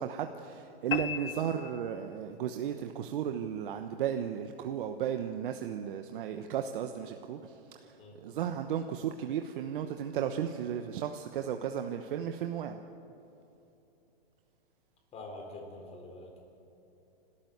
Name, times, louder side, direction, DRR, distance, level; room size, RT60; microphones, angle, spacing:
voice 1, 0.0-12.8, right 9 dB, 60° right, 6 dB, 1.1 m, -35 dB
sound 1, 0.9-2.4, left 10 dB, 70° left, 1.1 m, -37 dB
voice 2, 15.1-16.4, left 2 dB, 20° left, 2 dB, 4.1 m, -45 dB
28.5 x 13.0 x 8.0 m, 2.9 s
hypercardioid pair, 145°, 30 cm